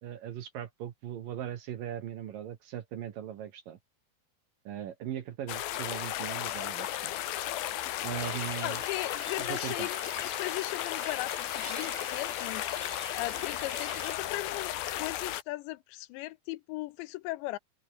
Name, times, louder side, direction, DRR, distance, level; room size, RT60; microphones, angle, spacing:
voice 1, 0.0-3.8 4.6-7.1 8.0-8.8 9.4-9.9, right 10 dB, 60° right, 2.7 m, -39 dB
sound 1, 5.5-15.4, left 13 dB, 65° left, 2.8 m, -35 dB
sound 2, 8.1-14.1, right 2 dB, 25° right, 0.6 m, -46 dB
voice 2, 8.6-17.6, left 19 dB, 80° left, 2.8 m, -38 dB
open air
omnidirectional pair, 5.2 m